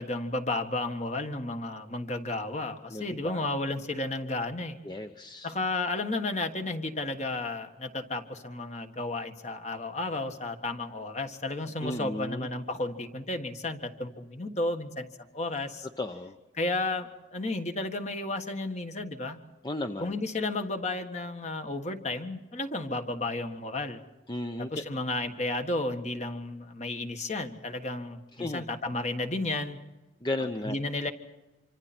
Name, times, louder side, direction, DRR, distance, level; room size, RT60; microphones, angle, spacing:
voice 1, 0.0-4.8 5.4-15.9 16.5-19.4 20.0-24.0 24.6-29.8 30.4-31.1, left 2 dB, 40° left, 6 dB, 1.7 m, -33 dB
voice 2, 2.9-3.4 4.8-5.5 11.8-12.5 16.0-16.4 19.6-20.2 24.3-24.8 28.4-28.6 30.2-30.8, left 1 dB, 25° left, 7 dB, 0.8 m, -34 dB
26.0 x 26.0 x 4.4 m, 1.1 s
head